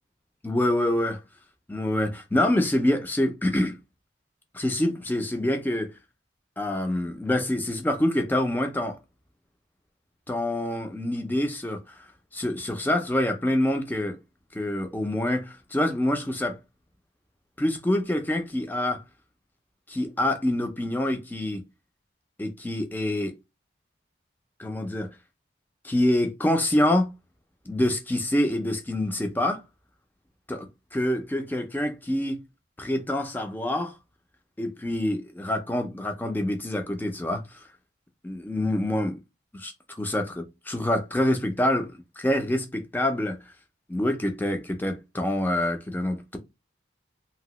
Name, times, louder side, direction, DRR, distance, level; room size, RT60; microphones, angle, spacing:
voice 1, 0.4-1.2 1.7-3.8 4.5-5.9 6.6-9.0 10.3-12.0 12.3-14.2 14.5-16.6 17.6-19.0 19.9-21.6 22.4-23.4 24.6-25.1 25.8-27.1 27.7-29.6 30.5-32.4 32.8-33.9 34.6-37.6 38.2-39.2 39.5-39.7 40.0-43.4 43.9-46.4, left 1 dB, 10° left, 0.4 m, -26 dB
2.9 x 2.6 x 3.0 m
head